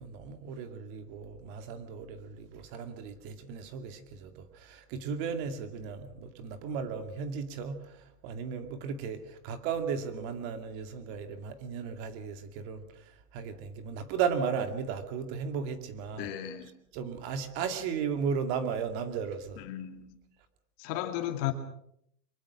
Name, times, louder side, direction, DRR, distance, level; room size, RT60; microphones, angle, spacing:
voice 1, 0.0-16.3 16.9-19.6, right 6 dB, 35° right, 2.4 m, -35 dB
voice 2, 16.2-16.7 19.6-20.2 20.8-21.5, left 13 dB, 35° left, 2.5 m, -34 dB
24.0 x 21.5 x 6.2 m
supercardioid pair, 155°, 46 cm